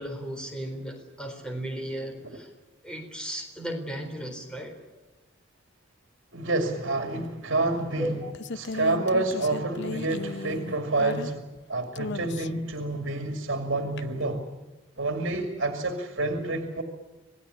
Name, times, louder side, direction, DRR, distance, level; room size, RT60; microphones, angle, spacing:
voice 1, 0.0-2.5 2.8-4.7 8.0-8.3, equal, 5° left, 3 dB, 4.0 m, -35 dB
voice 2, 6.3-8.2 8.5-11.4 11.7-14.4 15.0-16.8, right 2 dB, 65° right, 5 dB, 2.6 m, -28 dB
sound 1, 7.7-11.6 12.0-12.7 14.0-14.1, left 3 dB, 60° left, 0.7 m, -36 dB
27.0 x 19.0 x 8.5 m, 1.2 s
head